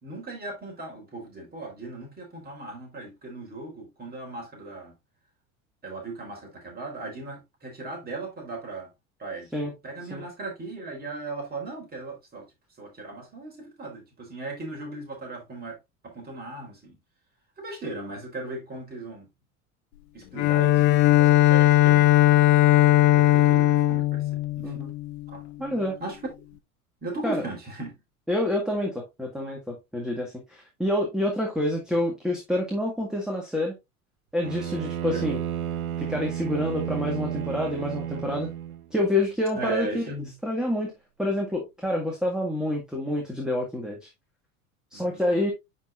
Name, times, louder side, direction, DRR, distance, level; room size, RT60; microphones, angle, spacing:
voice 1, 0.0-4.9 5.8-8.9 9.2-9.5 9.8-12.5 12.8-15.8 16.0-17.0 17.6-19.3 20.1-22.2 23.1-24.3 24.6-24.8 25.3-25.4 26.0-26.2 27.0-28.0 35.1-35.2 39.5-40.3 44.9-45.4, right 2 dB, 20° right, 3.8 m, -37 dB
Bowed string instrument, 20.4-25.4, left 14 dB, 50° left, 1.0 m, -19 dB
voice 2, 25.6-26.0 27.2-27.4 28.3-33.8 34.3-35.4 36.0-38.5 38.9-40.1 40.4-40.9 41.2-44.1 44.9-45.5, left 1 dB, ahead, 1.9 m, -27 dB
Bowed string instrument 2, 34.4-38.9, right 10 dB, 75° right, 0.7 m, -32 dB
10.5 x 4.4 x 2.5 m
figure-of-eight pair, 75°, 43 cm